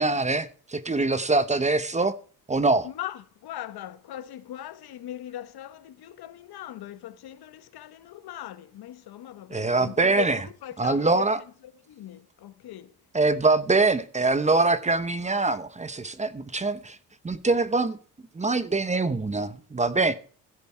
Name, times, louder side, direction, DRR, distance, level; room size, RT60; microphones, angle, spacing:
voice 1, 0.0-2.1 2.5-2.9 9.5-10.4 10.8-11.4 13.1-17.0 17.2-18.0 18.3-20.1, right 3 dB, 20° right, 0.9 m, -24 dB
voice 2, 2.8-11.3 11.6-13.0, left 12 dB, 75° left, 1.2 m, -39 dB
15.5 x 7.2 x 4.5 m
cardioid pair, 115°, 39 cm